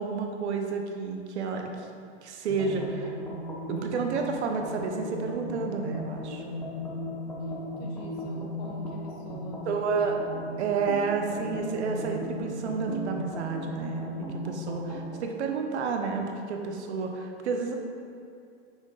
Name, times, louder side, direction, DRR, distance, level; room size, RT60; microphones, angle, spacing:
voice 1, 0.0-1.7 2.2-3.1 3.7-6.4 9.7-10.2 10.6-17.7, right 5 dB, 75° right, 3 dB, 1.1 m, -30 dB
sound 1, 2.5-15.2, left 1 dB, 5° left, 1.2 m, -37 dB
voice 2, 7.4-10.5, left 3 dB, 60° left, -1 dB, 1.5 m, -45 dB
6.2 x 5.0 x 5.0 m, 2.4 s
hypercardioid pair, 135°, 34 cm